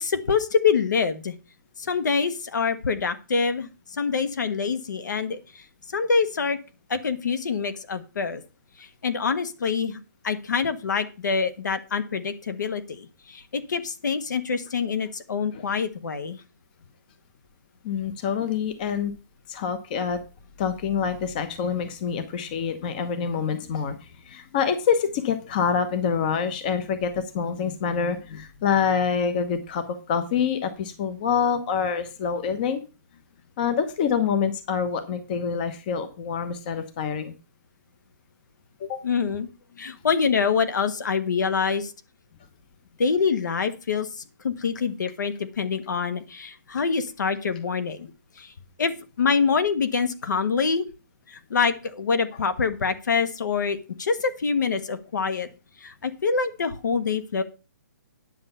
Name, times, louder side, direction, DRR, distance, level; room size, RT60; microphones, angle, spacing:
voice 1, 0.0-1.3 1.8-6.6 6.9-8.4 8.8-10.0 10.2-16.4 39.0-39.5 39.8-41.9 43.0-48.1 48.4-48.5 48.8-50.8 51.3-55.5 55.8-57.4, left 5 dB, 65° left, 11 dB, 1.4 m, -25 dB
voice 2, 17.8-19.1 19.5-20.2 20.6-32.8 33.6-37.3 38.8-39.0, left 7 dB, 25° left, 10 dB, 0.9 m, -26 dB
10.5 x 6.8 x 5.6 m, 0.32 s
hypercardioid pair, 170°, 10 cm